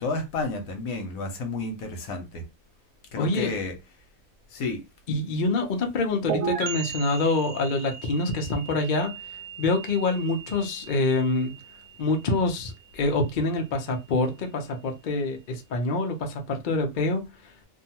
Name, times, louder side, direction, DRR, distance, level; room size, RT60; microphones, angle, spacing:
voice 1, 0.0-2.4 3.1-3.7 4.5-4.8, left 3 dB, 75° left, 1.2 m, -31 dB
voice 2, 3.2-3.5 5.1-9.1 9.6-11.5 12.0-17.2, left 2 dB, 55° left, 0.5 m, -26 dB
sound 1, 6.3-13.8, right 7 dB, 75° right, 1.0 m, -37 dB
2.6 x 2.3 x 2.8 m
omnidirectional pair, 1.5 m